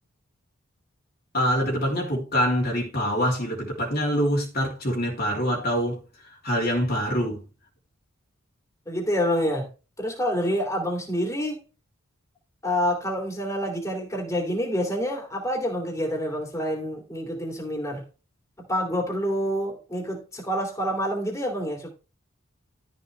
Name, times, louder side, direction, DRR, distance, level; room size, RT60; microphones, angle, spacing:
voice 1, 1.3-7.4, equal, 45° left, 3.2 m, -25 dB
voice 2, 8.9-9.7 10.0-11.6 12.6-18.0 18.7-21.9, equal, 15° left, 3.1 m, -27 dB
13.0 x 6.5 x 3.4 m
head